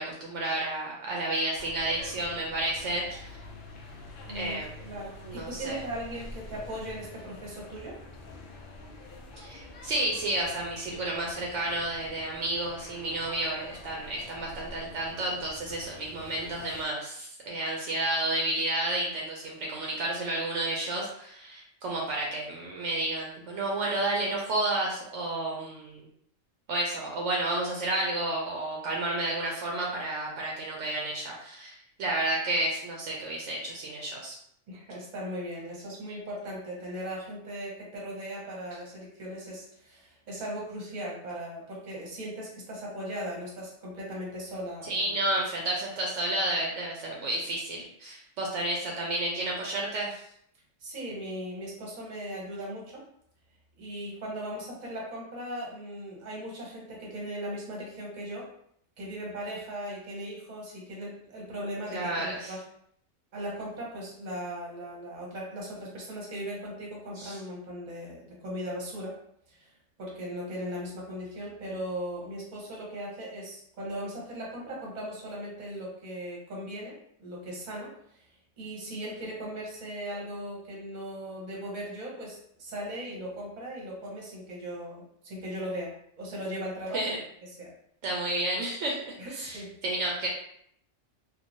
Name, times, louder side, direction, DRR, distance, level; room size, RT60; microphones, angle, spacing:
voice 1, 0.0-3.3 4.3-4.7 5.2-5.8 9.4-26.1 26.7-34.4 44.8-50.2 61.9-62.5 67.2-67.4 86.9-87.2 88.0-90.3, right 1 dB, 75° right, -2 dB, 0.9 m, -31 dB
sound 1, 1.5-16.8, left 2 dB, 60° left, 0.6 m, -47 dB
voice 2, 4.3-8.0 34.7-45.1 50.8-53.0 53.8-58.5 59.0-62.6 63.3-69.1 69.5-69.7 70.0-78.3 78.6-87.1 87.6-87.7 89.2-89.7, equal, 40° right, -3 dB, 0.9 m, -38 dB
3.0 x 2.4 x 2.6 m, 0.69 s
omnidirectional pair, 1.3 m